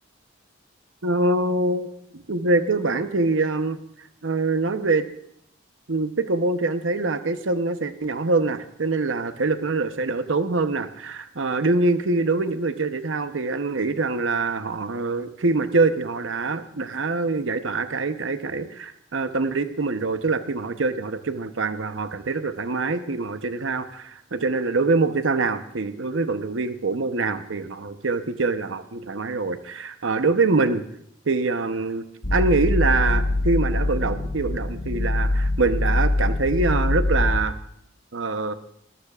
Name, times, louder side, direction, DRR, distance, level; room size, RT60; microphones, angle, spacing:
voice 1, 1.0-3.8 4.2-5.0 5.9-30.8 31.3-32.0 32.3-37.5 38.1-38.5, right 3 dB, 90° right, 9 dB, 0.9 m, -24 dB
sound 1, 32.2-37.4, left 2 dB, 90° left, 1.4 m, -23 dB
23.5 x 13.5 x 2.4 m, 0.72 s
head